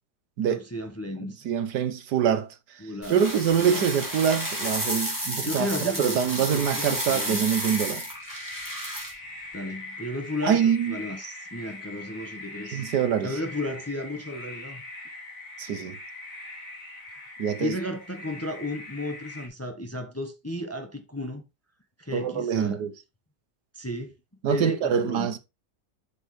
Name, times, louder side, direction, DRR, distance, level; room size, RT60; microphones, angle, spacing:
voice 1, 0.4-1.4 2.8-3.2 3.6-3.8 5.4-7.4 9.5-12.9 13.2-14.8 17.6-21.4 22.0-22.9 23.7-24.1 24.5-25.3, left 1 dB, 10° left, 0.9 m, -34 dB
voice 2, 1.2-2.5 3.1-5.7 6.0-8.0 10.4-11.0 12.7-13.4 15.6-16.0 17.4-17.7 22.1-22.9 24.4-25.4, right 8 dB, 75° right, 1.5 m, -25 dB
sound 1, 3.0-9.1, right 1 dB, 10° right, 2.6 m, -32 dB
sound 2, 6.6-19.5, left 2 dB, 50° left, 2.9 m, -42 dB
8.0 x 6.3 x 3.2 m
omnidirectional pair, 1.8 m